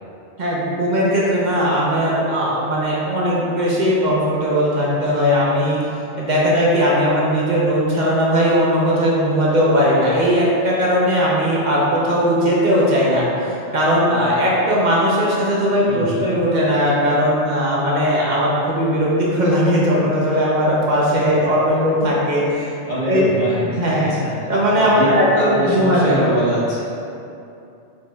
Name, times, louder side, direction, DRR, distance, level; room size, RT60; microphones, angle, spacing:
voice 1, 0.4-5.8 6.2-13.3 13.7-22.5 23.1-23.3 23.8-24.1 24.5-26.3, equal, 45° right, -6 dB, 0.7 m, -18 dB
voice 2, 15.9-16.3 21.1-21.5 22.4-24.4 24.8-26.8, equal, 45° left, -10 dB, 1.3 m, -24 dB
4.7 x 4.0 x 2.2 m, 2.6 s
omnidirectional pair, 1.2 m